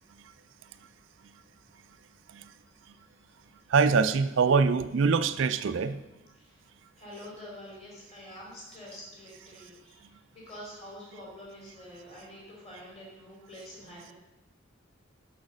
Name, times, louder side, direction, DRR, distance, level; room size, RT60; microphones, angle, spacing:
voice 1, 3.7-6.0, right 5 dB, 70° right, 11 dB, 0.4 m, -24 dB
voice 2, 7.0-10.0 10.3-14.1, left 1 dB, 30° left, -4 dB, 3.6 m, -46 dB
6.4 x 5.8 x 7.3 m, 0.98 s
head